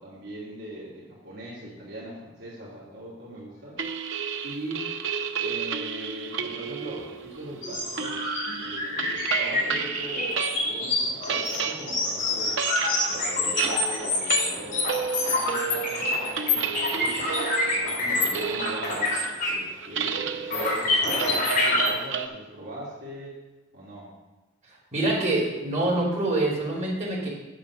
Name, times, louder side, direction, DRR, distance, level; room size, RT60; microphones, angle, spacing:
voice 1, 0.0-3.8 4.4-4.9 5.4-8.2 8.6-12.6 13.0-17.3 17.7-19.1 19.4-23.3 23.7-24.1, right 1 dB, 60° right, -7 dB, 2.6 m, -40 dB
sound 1, 3.8-10.8 11.1-22.3, right 7 dB, 90° right, 0.7 m, -32 dB
sound 2, 7.6-19.7 20.0-20.1 20.5-21.9, left 2 dB, 50° left, 3.8 m, -27 dB
voice 2, 24.9-27.3, right 2 dB, 40° right, -5 dB, 3.3 m, -25 dB
9.1 x 6.8 x 6.1 m, 1.1 s
head